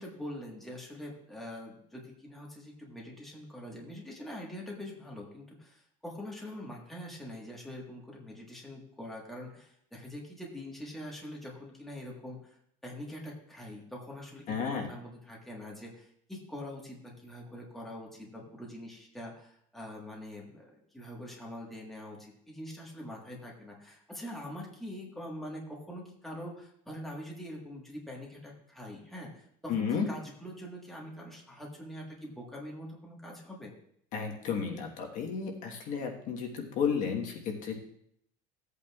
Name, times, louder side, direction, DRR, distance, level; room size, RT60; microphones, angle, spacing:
voice 1, 0.0-33.7, left 1 dB, ahead, -3 dB, 1.4 m, -44 dB
voice 2, 14.5-14.9 29.7-30.1 34.1-37.7, left 6 dB, 45° left, 2 dB, 1.3 m, -32 dB
16.0 x 8.3 x 2.4 m, 0.70 s
cardioid pair, 170°, 18 cm